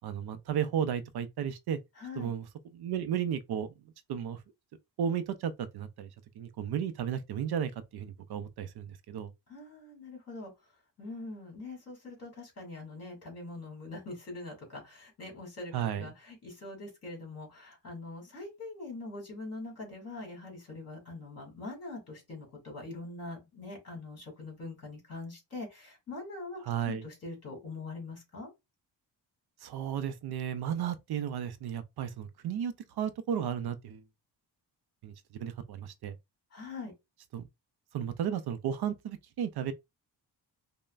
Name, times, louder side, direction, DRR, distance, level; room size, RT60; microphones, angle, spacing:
voice 1, 0.0-1.8 2.2-2.5 2.7-3.7 4.1-4.4 5.0-6.1 6.4-9.3 15.7-16.1 26.6-27.0 29.6-34.0 35.0-36.2 37.3-37.4 37.9-39.7, right 8 dB, 65° right, 0.5 m, -34 dB
voice 2, 2.0-2.3 9.5-10.5 11.0-28.5 36.5-36.9, left 2 dB, 35° left, 2.2 m, -43 dB
5.3 x 2.1 x 2.4 m
wide cardioid pair, 135°, 42 cm